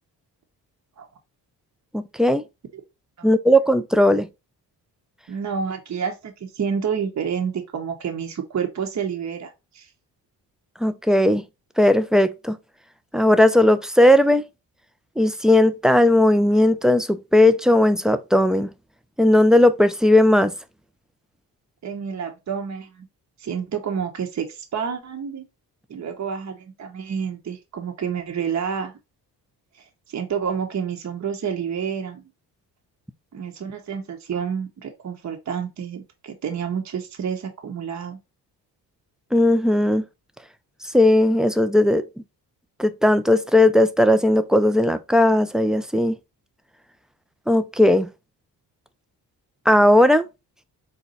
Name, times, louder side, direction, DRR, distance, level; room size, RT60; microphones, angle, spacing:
voice 1, 1.9-2.4 3.2-4.3 10.8-11.4 11.8-12.6 13.1-14.4 15.2-18.7 19.2-20.5 39.3-40.0 40.9-42.1 42.8-46.1 47.5-48.1 49.7-50.3, left 1 dB, ahead, 0.3 m, -17 dB
voice 2, 5.3-9.9 21.8-23.1 23.4-25.4 25.9-28.9 30.1-32.2 33.3-38.2, right 7 dB, 45° right, 0.9 m, -29 dB
4.2 x 2.3 x 3.9 m
supercardioid pair, 65°, 41 cm